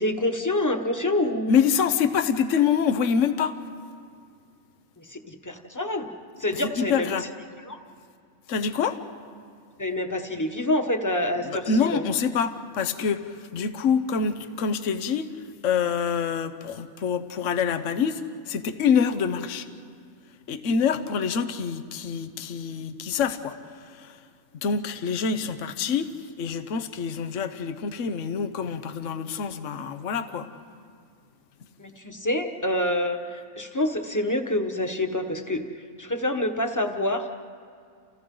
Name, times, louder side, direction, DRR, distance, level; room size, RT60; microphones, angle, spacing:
voice 1, 0.0-1.5 5.0-6.1 6.4-7.2 7.7-7.8 9.8-12.0 31.8-35.6 36.0-37.3, left 1 dB, 15° left, 4 dB, 1.3 m, -27 dB
voice 2, 1.5-3.6 6.5-7.3 8.5-9.0 11.4-15.3 15.6-19.7 20.5-24.2 24.6-30.5, left 6 dB, 60° left, 10 dB, 1.2 m, -26 dB
30.0 x 30.0 x 3.9 m, 2.3 s
omnidirectional pair, 1.5 m